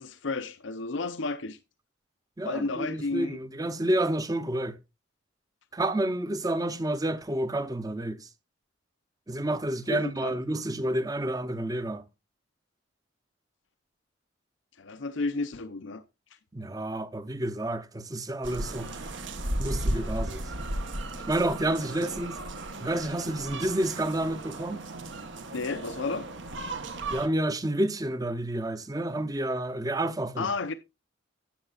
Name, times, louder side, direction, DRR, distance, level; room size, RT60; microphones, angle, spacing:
voice 1, 0.0-1.6 2.4-3.4 9.9-10.4 14.8-16.0 25.5-26.3 30.4-30.7, left 3 dB, 70° left, 0.6 m, -32 dB
voice 2, 2.4-4.8 5.7-8.3 9.3-12.0 16.5-18.9 19.6-20.5 21.3-22.4 22.8-24.8 27.1-30.5, right 1 dB, 20° right, 0.7 m, -29 dB
sound 1, 18.4-27.3, right 1 dB, 70° right, 1.2 m, -35 dB
13.0 x 8.2 x 2.4 m
head